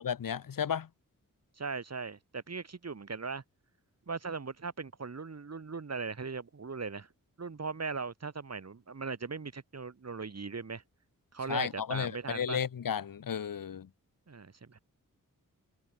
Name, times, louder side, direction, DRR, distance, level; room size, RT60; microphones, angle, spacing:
voice 1, 0.0-0.9 11.5-13.9, left 8 dB, 75° left, 1.9 m, -33 dB
voice 2, 1.6-3.4 4.1-7.1 7.4-10.8 11.3-12.6 14.3-14.8, right 4 dB, 50° right, 5.0 m, -39 dB
cardioid pair, 70°, 33 cm